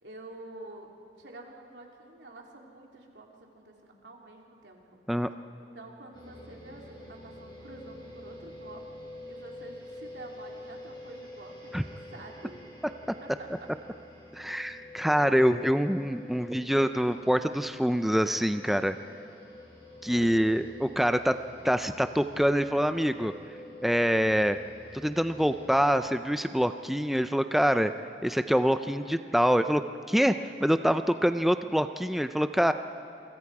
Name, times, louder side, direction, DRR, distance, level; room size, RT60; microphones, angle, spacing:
voice 1, 0.0-0.9 1.2-4.8 5.6-8.9 9.2-12.6 13.2-13.5 20.1-20.3, right 2 dB, 75° right, 0 dB, 3.2 m, -48 dB
sound 1, 6.1-25.9, left 1 dB, 30° left, 5.4 m, -47 dB
voice 2, 14.3-19.0 20.0-21.4 21.6-23.3 23.8-24.6 25.0-27.9 28.2-32.7, equal, ahead, 9 dB, 0.4 m, -25 dB
28.0 x 25.0 x 4.8 m, 2.5 s
head